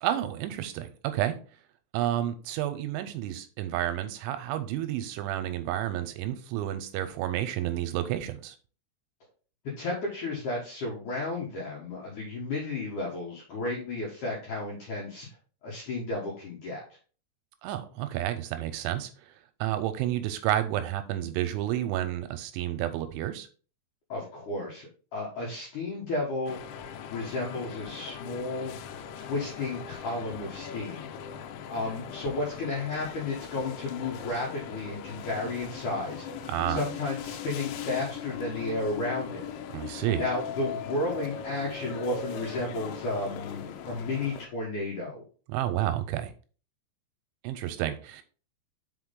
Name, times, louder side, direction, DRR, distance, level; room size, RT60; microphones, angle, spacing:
voice 1, 0.0-1.4 1.9-8.6 17.6-23.5 36.5-36.8 39.7-40.3 45.5-46.3 47.4-48.2, right 12 dB, 85° right, 9 dB, 2.9 m, -30 dB
voice 2, 9.8-15.3 15.6-16.8 24.1-26.6 27.1-28.7 29.1-31.1 31.7-36.2 36.7-39.5 40.2-45.2, left 2 dB, 65° left, -3 dB, 2.0 m, -33 dB
sound 1, 26.5-44.5, left 7 dB, 85° left, 3.0 m, -39 dB
6.1 x 5.1 x 3.7 m, 0.39 s
omnidirectional pair, 5.6 m